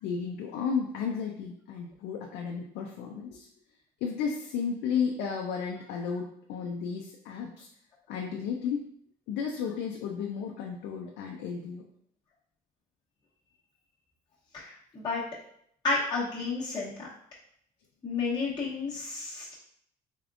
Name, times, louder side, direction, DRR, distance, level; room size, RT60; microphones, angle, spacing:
voice 1, 0.0-3.5 4.0-7.7 8.1-8.8 9.3-11.8, left 6 dB, 90° left, 0 dB, 0.5 m, -33 dB
voice 2, 14.5-15.2 15.8-16.9 18.0-19.5, left 3 dB, 25° left, -9 dB, 0.9 m, -31 dB
3.6 x 3.4 x 2.5 m, 0.69 s
cardioid pair, 110°, 17 cm